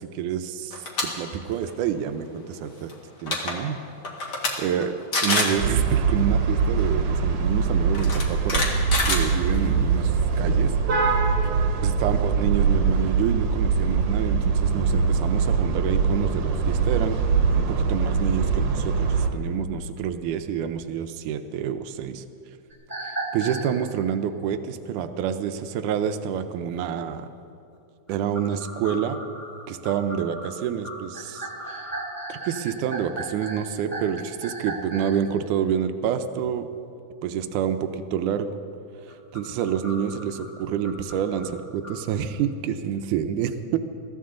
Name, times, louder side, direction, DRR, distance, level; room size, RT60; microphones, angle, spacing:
voice 1, 0.0-2.9 3.2-3.8 4.6-8.7 9.0-10.8 11.0-11.1 11.8-17.2 17.5-22.2 23.0-27.3 28.1-29.2 29.7-31.8 32.3-36.7 37.2-38.6 39.1-43.8, right 8 dB, 85° right, 9 dB, 2.2 m, -28 dB
sound 1, 0.7-1.0 1.5-1.7 2.9-3.0 3.2-3.5 4.0-4.5 4.8-4.9 5.1-5.6 6.8-6.9 7.9-9.8, left 2 dB, 35° left, 2.2 m, -25 dB
sound 2, 5.6-19.3, right 5 dB, 65° right, 2.1 m, -22 dB
sound 3, 22.7-23.7 28.1-35.2 39.1-42.0, right 2 dB, 5° left, 2.9 m, -36 dB
23.0 x 15.0 x 3.8 m, 2.5 s
omnidirectional pair, 3.5 m